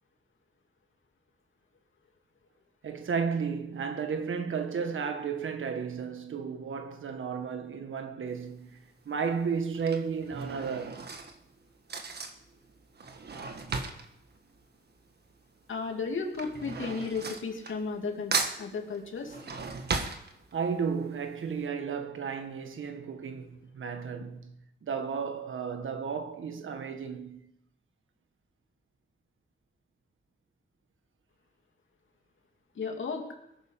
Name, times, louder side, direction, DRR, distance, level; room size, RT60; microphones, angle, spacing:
voice 1, 2.8-8.8 9.0-11.0 20.5-27.4, right 6 dB, 85° right, 1.6 m, -33 dB
Drawer open or close / Cutlery silverware, 8.3-8.7 9.5-15.4 15.7-18.1 18.3-20.8 21.3-21.4 21.6-21.7, right 4 dB, 55° right, 1.6 m, -36 dB
voice 2, 15.7-19.4 32.7-33.2, left 4 dB, 80° left, 2.6 m, -34 dB
21.5 x 9.3 x 5.8 m
wide cardioid pair, 145°, 20 cm